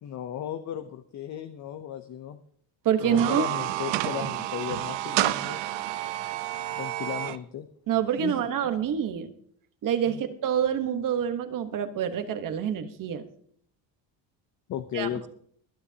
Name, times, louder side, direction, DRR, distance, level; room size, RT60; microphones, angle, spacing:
voice 1, 0.0-2.4 3.0-5.6 6.7-7.7 8.2-8.5 10.1-10.2 14.7-15.3, left 10 dB, 40° left, 9 dB, 0.6 m, -35 dB
voice 2, 2.8-3.5 7.9-9.3 9.8-13.2 14.9-15.1, right 9 dB, 45° right, 9 dB, 1.2 m, -26 dB
sound 1, 3.0-7.4, right 15 dB, 70° right, 0.8 m, -30 dB
21.5 x 10.0 x 2.8 m, 0.63 s
cardioid pair, 160°, 46 cm